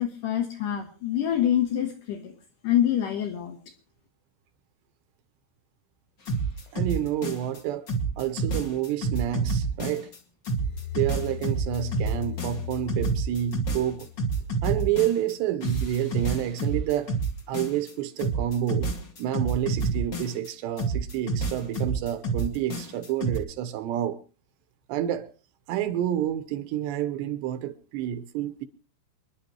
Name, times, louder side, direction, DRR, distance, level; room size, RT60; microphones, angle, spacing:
voice 1, 0.0-2.3 2.6-3.6, left 10 dB, 65° left, 2.3 m, -26 dB
sound 1, 6.2-7.6 7.9-10.2 10.4-15.3 15.6-17.9 18.2-20.5 20.8-23.4, right 4 dB, 35° left, 1.9 m, -28 dB
voice 2, 6.7-7.9 8.2-10.1 11.0-14.1 14.6-17.1 17.5-18.9 19.2-24.2 24.9-25.3 25.7-28.7, right 11 dB, 80° right, 3.2 m, -29 dB
sound 2, 10.6-14.7, left 13 dB, 85° left, 4.4 m, -37 dB
27.0 x 11.0 x 3.1 m
omnidirectional pair, 5.0 m